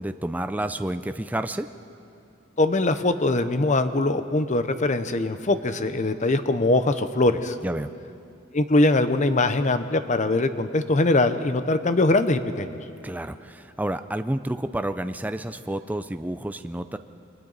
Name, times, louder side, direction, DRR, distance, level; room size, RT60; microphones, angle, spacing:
voice 1, 0.0-1.7 7.6-7.9 13.0-17.0, right 1 dB, 10° right, 9 dB, 0.4 m, -30 dB
voice 2, 2.6-7.6 8.5-12.8, left 2 dB, 35° left, 10 dB, 0.8 m, -22 dB
29.0 x 23.0 x 4.1 m, 2.7 s
head